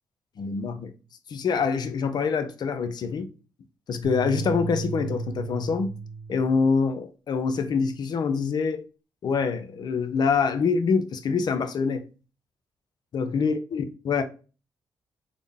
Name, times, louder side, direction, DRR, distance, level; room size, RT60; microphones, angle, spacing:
voice 1, 0.4-0.9 1.3-3.3 3.9-6.0 6.3-8.8 9.2-12.1 13.1-14.2, left 5 dB, 60° left, 0.5 m, -25 dB
sound 1, 4.0-6.5, right 5 dB, 80° right, 0.8 m, -34 dB
3.7 x 2.1 x 3.4 m
supercardioid pair, 55°, 8 cm